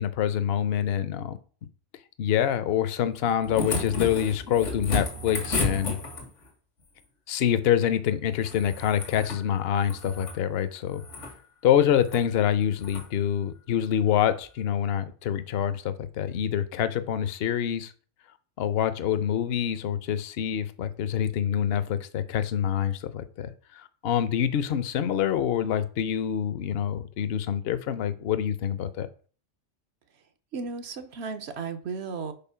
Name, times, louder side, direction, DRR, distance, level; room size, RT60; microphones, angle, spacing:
voice 1, 0.0-1.4 2.2-6.0 7.3-11.0 11.6-17.9 18.6-29.1, left 9 dB, 60° left, 13 dB, 0.8 m, -26 dB
sound 1, 3.2-6.5 8.4-9.4 9.8-10.4 10.9-11.3 12.0-12.2 12.8-13.1 14.4-14.5, left 2 dB, 85° left, 1.9 m, -33 dB
voice 2, 30.5-32.3, right 5 dB, 65° right, 8 dB, 1.0 m, -34 dB
5.5 x 4.3 x 5.6 m, 0.41 s
omnidirectional pair, 1.2 m